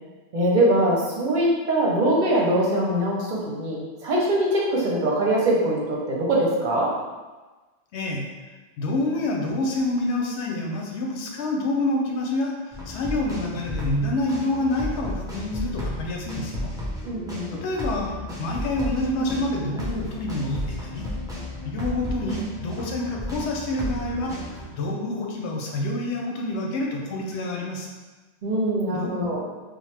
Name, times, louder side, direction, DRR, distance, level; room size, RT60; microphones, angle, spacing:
voice 1, 0.3-6.9 9.4-9.5 17.0-17.6 19.2-19.3 22.2-22.3 28.4-29.4, right 1 dB, 50° right, -4 dB, 0.7 m, -23 dB
voice 2, 7.9-8.2 8.8-16.7 17.6-18.1 18.4-21.1 21.6-24.3 24.7-27.9 28.9-29.1, left 2 dB, 80° left, 0 dB, 0.9 m, -27 dB
sound 1, 12.7-24.7, left 1 dB, 5° right, 0.4 m, -33 dB
2.9 x 2.0 x 3.2 m, 1.3 s
omnidirectional pair, 1.1 m